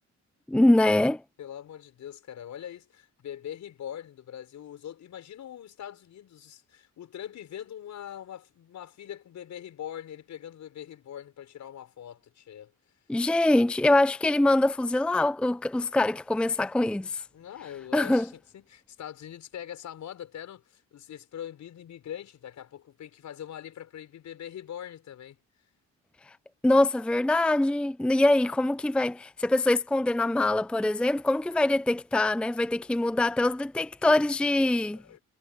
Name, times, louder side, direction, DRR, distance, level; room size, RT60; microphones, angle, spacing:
voice 1, 0.5-1.2 13.1-17.2 17.9-18.3 26.6-35.0, left 2 dB, 5° left, 0.5 m, -24 dB
voice 2, 1.4-12.7 15.8-16.2 16.8-17.0 17.3-25.4 34.9-35.2, left 10 dB, 70° left, 6.2 m, -42 dB
cardioid pair, 90°, 30 cm